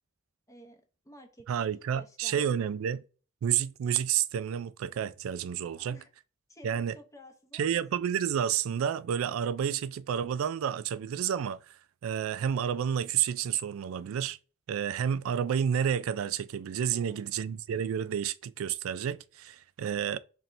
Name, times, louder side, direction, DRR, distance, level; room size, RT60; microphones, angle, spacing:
voice 1, 0.5-2.7 5.7-6.1 6.5-8.0 16.9-17.2, equal, 15° left, 0.7 m, -53 dB
voice 2, 1.5-3.0 3.4-6.0 6.6-7.0 7.5-14.4 14.7-20.2, right 8 dB, 70° right, 0.3 m, -30 dB
4.2 x 3.1 x 2.5 m
head